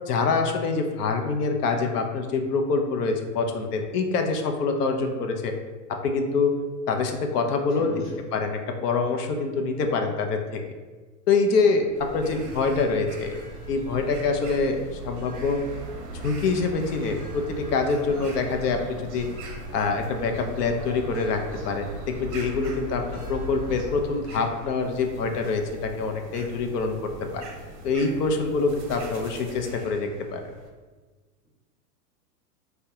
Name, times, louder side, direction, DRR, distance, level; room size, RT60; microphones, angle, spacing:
voice 1, 0.1-5.5 5.9-6.6 6.9-7.9 8.3-10.6 11.3-13.4 13.7-15.6 16.1-19.3 19.7-27.4 27.8-30.4, left 4 dB, 75° left, 4 dB, 0.6 m, -25 dB
voice 2, 7.8-8.2 12.3-12.4, right 1 dB, ahead, -22 dB, 0.3 m, -35 dB
sound 1, 11.9-30.7, right 2 dB, 50° right, 0.6 m, -39 dB
3.4 x 2.2 x 2.8 m, 1.3 s
supercardioid pair, 160°, 47 cm